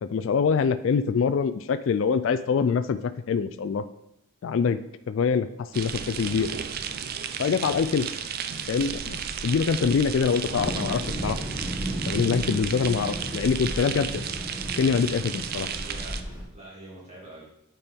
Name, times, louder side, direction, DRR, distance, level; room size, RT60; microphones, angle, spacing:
voice 1, 0.0-3.8 4.4-4.8 5.1-5.5 5.7-6.5 7.4-8.1 8.7-9.2 9.4-11.4 12.1-14.2 14.8-15.7, left 6 dB, 60° left, 12 dB, 0.3 m, -24 dB
sound 1, 5.7-16.2, right 7 dB, 45° right, 0.4 m, -34 dB
Thunder, 10.5-16.4, right 1 dB, 10° right, 1.2 m, -33 dB
voice 2, 15.7-17.5, right 1 dB, 30° right, -5 dB, 2.5 m, -45 dB
8.6 x 4.5 x 3.5 m, 0.82 s
head